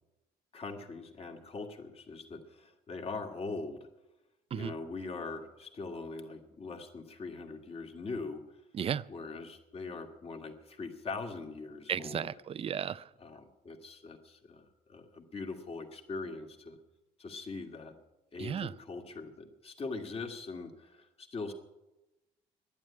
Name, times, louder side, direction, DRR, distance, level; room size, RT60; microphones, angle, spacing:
voice 1, 0.5-3.9 4.5-8.4 9.1-12.3 13.2-16.8 17.2-18.0 18.3-21.5, left 3 dB, 35° left, 4 dB, 2.2 m, -42 dB
voice 2, 8.7-9.0 11.9-13.1 18.4-18.7, right 8 dB, 35° right, 18 dB, 0.5 m, -34 dB
11.0 x 10.0 x 9.7 m, 1.0 s
cardioid pair, 110°, 17 cm